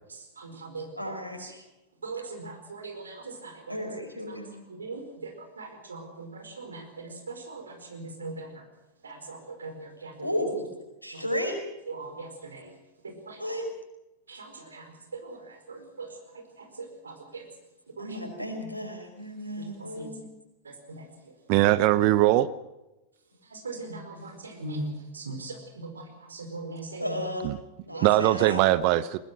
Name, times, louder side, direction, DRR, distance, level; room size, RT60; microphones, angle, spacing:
voice 1, 0.1-1.5 2.0-3.8 4.3-4.4 4.7-8.7 9.0-10.4 11.1-11.2 11.9-12.8 13.0-13.5 14.3-17.5 17.9-18.2 18.6-18.7 19.6-20.1 20.6-21.4 23.4-27.2 27.9-28.1, right 3 dB, 75° right, 5 dB, 4.7 m, -41 dB
voice 2, 1.0-1.6 3.7-4.7 10.2-10.7 11.0-11.6 13.4-13.7 18.0-20.2 27.0-27.5 27.9-28.6, equal, 90° left, 4 dB, 5.0 m, -33 dB
voice 3, 21.5-22.5 27.4-27.5 28.0-29.2, right 15 dB, 45° right, 17 dB, 0.8 m, -21 dB
20.5 x 20.5 x 6.3 m, 0.97 s
figure-of-eight pair, 90°, 0 cm